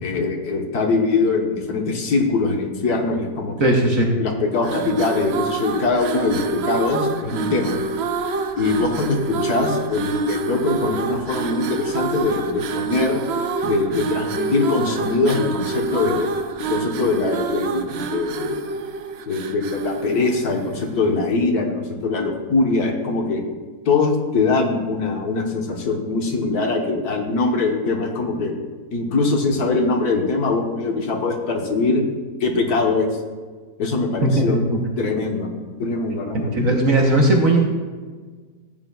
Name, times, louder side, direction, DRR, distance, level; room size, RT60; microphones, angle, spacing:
voice 1, 0.0-3.7 4.2-7.8 8.6-13.2 13.6-16.3 16.6-18.7 19.3-23.4 23.8-28.5 28.9-32.0 32.4-33.1 33.8-34.6 35.0-35.5 35.8-37.0, left 3 dB, 70° left, 2 dB, 1.6 m, -22 dB
voice 2, 3.6-4.1 34.2-34.8 36.3-37.7, right 2 dB, 55° right, 1 dB, 1.4 m, -18 dB
sound 1, 4.6-21.0, right 5 dB, 75° right, 0.6 m, -27 dB
14.0 x 9.1 x 2.3 m, 1.4 s
omnidirectional pair, 1.8 m